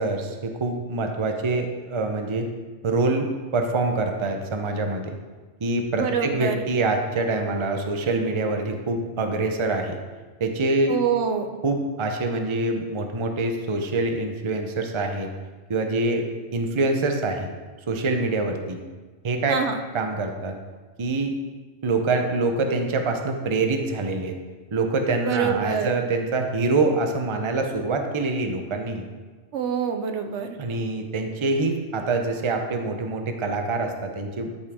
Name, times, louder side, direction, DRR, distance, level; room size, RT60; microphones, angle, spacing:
voice 1, 0.0-2.5 2.8-5.2 5.6-10.0 10.4-10.9 11.6-15.3 15.7-16.3 16.5-17.5 17.9-18.8 19.2-19.6 19.9-20.6 21.0-21.3 21.8-24.4 24.7-29.1 30.6-34.5, right 3 dB, 30° right, 5 dB, 0.7 m, -25 dB
voice 2, 6.0-6.6 10.9-11.5 19.5-19.8 25.3-26.0 29.5-30.6, right 7 dB, 70° right, 6 dB, 1.0 m, -26 dB
12.5 x 5.4 x 3.6 m, 1.3 s
omnidirectional pair, 1.2 m